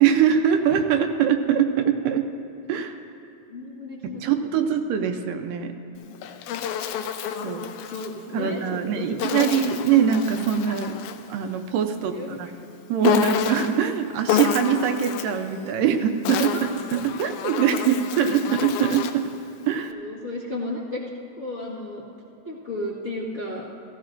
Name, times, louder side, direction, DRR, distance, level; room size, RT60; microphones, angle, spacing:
voice 1, 0.0-2.2 2.7-3.0 4.0-5.7 7.4-7.6 8.3-11.0 11.3-12.5 12.9-16.5 16.9-19.2 19.7-20.0, right 8 dB, 80° right, 6 dB, 2.2 m, -23 dB
voice 2, 3.5-4.2 4.6-4.7 7.4-9.5 12.1-12.6 16.5-16.6 19.9-21.0 21.4-22.0 22.4-23.6, left 1 dB, 35° left, -9 dB, 1.1 m, -34 dB
Insect, 5.9-8.1 9.2-11.3 13.0-13.8 14.3-15.4 16.0-19.3, left 8 dB, 85° left, 1.8 m, -28 dB
16.0 x 15.5 x 2.5 m, 2.8 s
omnidirectional pair, 4.0 m